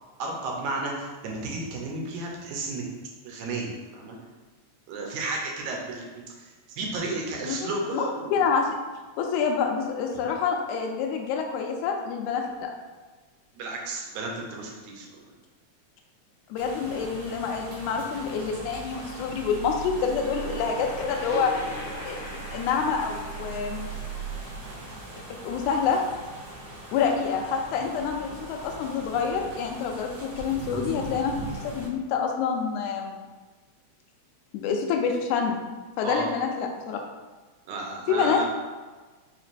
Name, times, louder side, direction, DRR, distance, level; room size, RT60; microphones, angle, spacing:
voice 1, 0.2-2.8 3.3-4.2 4.9-8.4 13.6-15.1 36.0-36.2 37.7-38.4, right 2 dB, 85° right, -1 dB, 2.1 m, -33 dB
voice 2, 7.4-8.1 8.3-8.7 9.2-12.7 16.5-21.5 22.0-23.9 25.3-26.0 26.9-31.4 31.6-33.2 34.5-35.6 36.0-37.0 38.1-38.4, left 6 dB, 85° left, 2 dB, 2.0 m, -27 dB
sound 1, 16.5-31.9, right 3 dB, 65° right, 1.7 m, -39 dB
sound 2, 20.0-25.6, left 2 dB, 65° left, 1.3 m, -41 dB
4.8 x 3.0 x 2.5 m, 1.3 s
omnidirectional pair, 3.3 m